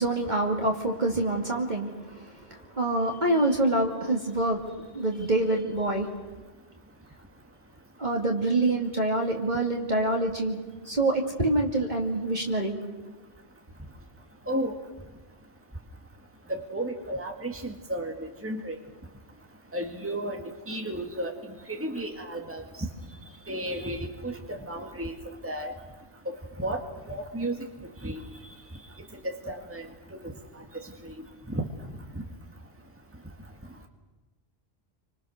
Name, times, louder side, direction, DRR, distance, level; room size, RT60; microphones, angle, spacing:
voice 1, 0.0-4.6 4.9-6.1 8.0-10.6 10.8-12.8, right 2 dB, 45° right, 1 dB, 2.7 m, -26 dB
voice 2, 16.5-18.8 19.7-21.3 21.7-22.9 23.5-25.1 25.4-25.7 26.3-26.8 27.1-27.6 28.0-28.2 29.2-29.9 30.1-30.3 31.0-31.2 31.5-31.7, right 1 dB, 10° right, 3 dB, 2.0 m, -33 dB
29.5 x 25.0 x 6.6 m, 1.2 s
omnidirectional pair, 1.1 m